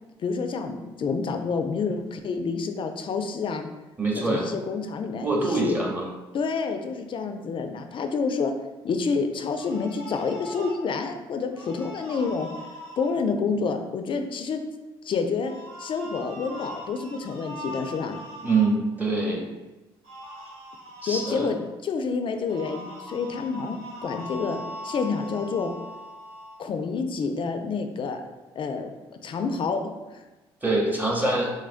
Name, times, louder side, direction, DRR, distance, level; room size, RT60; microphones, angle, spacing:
voice 1, 0.2-3.7 4.1-5.8 6.3-8.5 8.8-12.5 13.0-14.6 15.0-15.5 15.8-18.2 19.2-19.4 21.0-21.6 21.8-25.7 26.6-28.2 28.5-28.9 29.2-29.8 30.1-30.2, left 5 dB, 40° left, 6 dB, 0.4 m, -28 dB
voice 2, 4.0-4.5 5.2-6.1 18.4-19.4 21.0-21.5 30.6-31.5, right 3 dB, 15° right, -1 dB, 0.7 m, -24 dB
sound 1, 9.5-10.8 11.5-13.1 15.4-18.7 20.0-21.5 22.5-26.6, left 1 dB, 80° right, 1.1 m, -41 dB
3.0 x 2.5 x 2.4 m, 1.1 s
hypercardioid pair, 55°, 13 cm